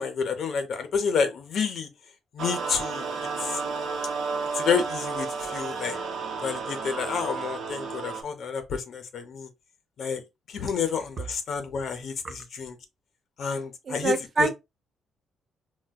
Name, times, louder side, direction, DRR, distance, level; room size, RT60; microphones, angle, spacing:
voice 1, 0.0-1.9 2.3-3.1 3.4-3.6 4.5-6.0 6.4-9.5 10.0-10.2 10.5-12.8 13.4-14.5, left 6 dB, 50° left, 0.6 m, -29 dB
sound 1, 2.4-8.2, right 4 dB, 65° right, 0.8 m, -32 dB
voice 2, 13.9-14.5, right 4 dB, 30° right, 0.4 m, -25 dB
4.4 x 2.1 x 2.2 m
cardioid pair, 170°, 0 cm